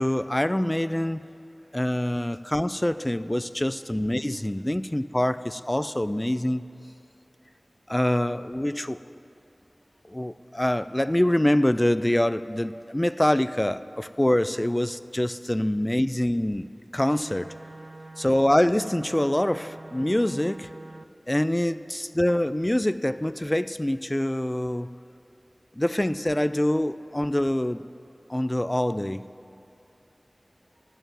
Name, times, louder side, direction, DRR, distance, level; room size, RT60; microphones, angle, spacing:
voice 1, 0.0-1.2 1.7-6.7 7.9-9.0 10.1-16.7 16.9-17.6 18.2-20.7 21.3-24.9 25.8-27.8 28.3-29.2, left 1 dB, 20° left, 0.3 m, -25 dB
voice 2, 1.2-2.3 3.6-4.2 4.5-4.7 9.6-10.0 30.5-30.8, equal, 80° right, 2.3 m, -65 dB
sound 1, 17.1-21.0, right 2 dB, 55° right, 0.4 m, -44 dB
11.0 x 6.8 x 9.2 m
wide cardioid pair, 40°, 0 cm